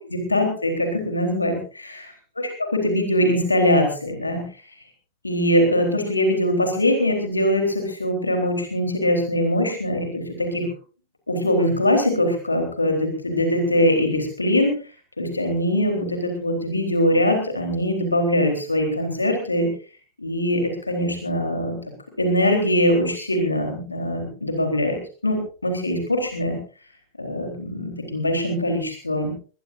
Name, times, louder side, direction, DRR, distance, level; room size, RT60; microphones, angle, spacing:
voice 1, 0.1-1.6 2.4-4.4 5.2-10.7 11.3-14.7 15.2-19.7 20.2-21.8 22.2-25.0 25.2-26.6 27.2-29.3, left 1 dB, 80° left, 4 dB, 3.8 m, -22 dB
21.5 x 21.0 x 2.6 m, 0.37 s
figure-of-eight pair, 90°, 0 cm